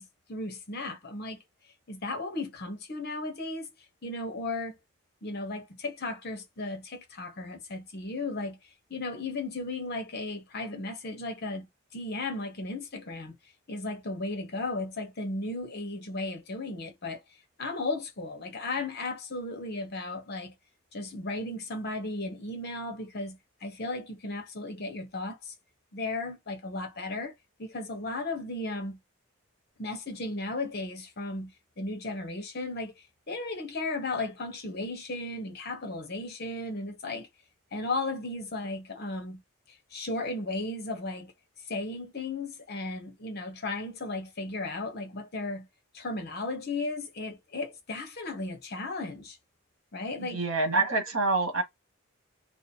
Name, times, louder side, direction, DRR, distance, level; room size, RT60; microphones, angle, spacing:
voice 1, 0.0-1.4 1.9-3.7 4.0-4.8 5.2-8.6 8.9-11.7 11.9-13.4 13.7-17.2 17.6-20.5 20.9-25.5 25.9-27.3 27.6-29.0 29.8-37.3 37.7-39.4 39.9-41.3 41.7-45.7 45.9-49.4 49.9-50.4, left 2 dB, 50° left, 1.1 m, -35 dB
voice 2, 50.2-51.6, right 3 dB, 85° right, 1.4 m, -26 dB
3.1 x 2.8 x 4.4 m
head